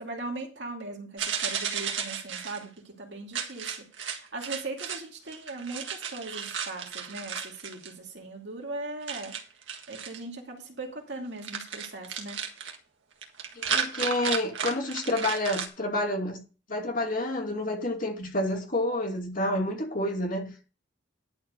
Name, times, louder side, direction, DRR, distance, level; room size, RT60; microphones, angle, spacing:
voice 1, 0.0-3.9 4.2-9.4 9.9-12.4, right 2 dB, 65° right, 2.4 m, -39 dB
sound 1, 1.2-2.6 3.3-5.0 5.3-7.9 9.0-10.2 11.4-12.8 13.2-15.7, right 7 dB, 85° right, 1.6 m, -33 dB
voice 2, 13.6-16.4 16.7-20.5, left 1 dB, 45° left, 2.5 m, -29 dB
11.5 x 4.6 x 6.6 m
head